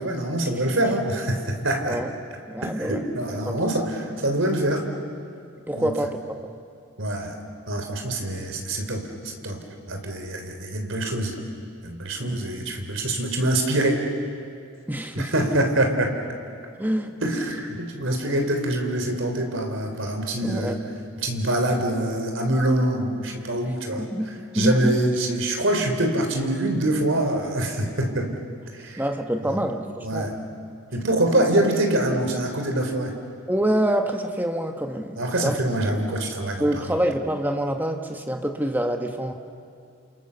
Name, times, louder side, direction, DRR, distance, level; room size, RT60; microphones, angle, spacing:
voice 1, 0.0-2.0 2.6-4.9 5.7-5.9 7.0-7.4 7.7-9.6 9.9-11.4 11.8-14.1 15.2-16.1 17.2-20.8 21.2-24.1 24.5-28.3 28.8-29.0 29.4-29.6 30.0-30.4 30.9-33.1 35.2-36.9, right 1 dB, 70° right, 4 dB, 3.7 m, -25 dB
voice 2, 2.5-3.0 3.5-3.6 5.7-6.5 12.2-12.4 14.9-15.3 16.8-17.2 20.4-20.8 23.6-25.0 29.0-30.4 33.5-35.6 36.6-39.3, right 1 dB, 10° right, 5 dB, 1.4 m, -26 dB
29.0 x 28.0 x 7.0 m, 2.4 s
head